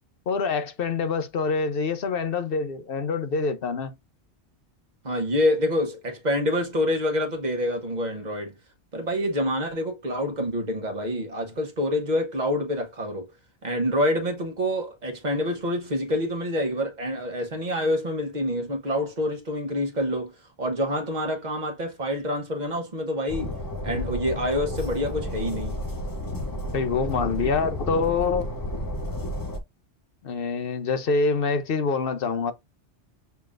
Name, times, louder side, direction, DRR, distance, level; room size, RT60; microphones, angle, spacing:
voice 1, 0.3-3.9 26.7-28.5 30.2-32.5, left 4 dB, 60° left, 0.9 m, -25 dB
voice 2, 5.0-8.6 8.9-13.3 13.6-20.3 20.6-23.5 23.8-25.8, left 1 dB, 40° right, 1.2 m, -27 dB
Train, 23.3-29.6, left 1 dB, 20° left, 0.6 m, -31 dB
6.9 x 3.0 x 2.5 m
omnidirectional pair, 1.2 m